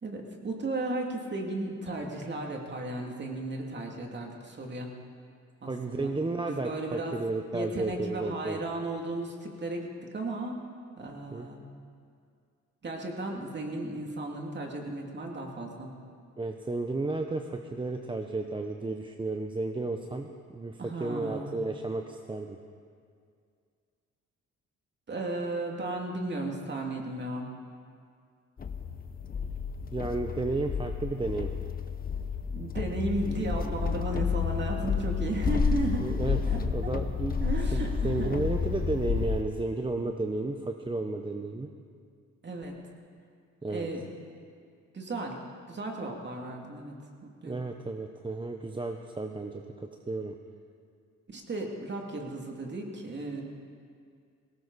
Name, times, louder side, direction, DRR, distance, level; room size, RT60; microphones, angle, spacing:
voice 1, 0.0-4.9 5.6-6.1 6.4-7.1 7.5-10.6 11.0-11.6 12.8-15.9 20.8-21.6 25.1-27.5 32.5-36.1 36.5-36.9 37.4-38.4 42.4-42.8 43.7-44.0 44.9-45.4 45.7-47.0 47.2-47.6 51.3-53.4, right 2 dB, 35° right, 1 dB, 2.7 m, -35 dB
voice 2, 5.7-8.6 11.3-11.5 16.4-22.6 29.9-31.5 36.0-37.4 37.7-41.7 43.6-43.9 47.4-50.3, right 3 dB, 15° right, 4 dB, 0.8 m, -33 dB
sound 1, 28.6-39.4, left 6 dB, 30° left, 0.9 m, -30 dB
19.0 x 18.0 x 4.2 m, 2.2 s
cardioid pair, 90°, 30 cm